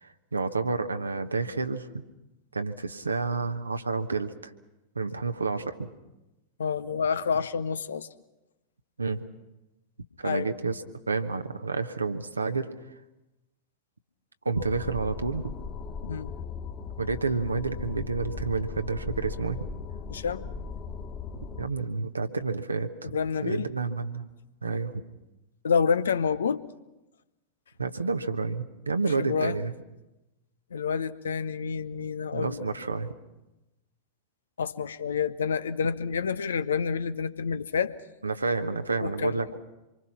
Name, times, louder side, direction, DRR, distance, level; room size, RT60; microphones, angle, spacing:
voice 1, 0.0-1.9 2.5-4.5 4.9-5.9 9.0-9.2 10.2-10.8 11.1-12.7 14.4-15.5 17.0-19.6 21.6-23.1 23.4-24.2 24.6-24.9 27.8-29.7 32.3-33.1 38.2-39.6, right 4 dB, 80° right, 8 dB, 1.1 m, -29 dB
voice 2, 6.6-8.1 10.2-10.5 16.0-16.3 20.1-20.5 23.1-23.7 25.6-26.6 29.2-29.6 30.7-32.6 34.6-37.9 39.0-39.4, left 6 dB, 70° left, 14 dB, 0.8 m, -28 dB
sound 1, 14.5-21.7, left 5 dB, 25° left, 1.9 m, -38 dB
26.0 x 24.0 x 5.9 m, 0.99 s
figure-of-eight pair, 90°, 0 cm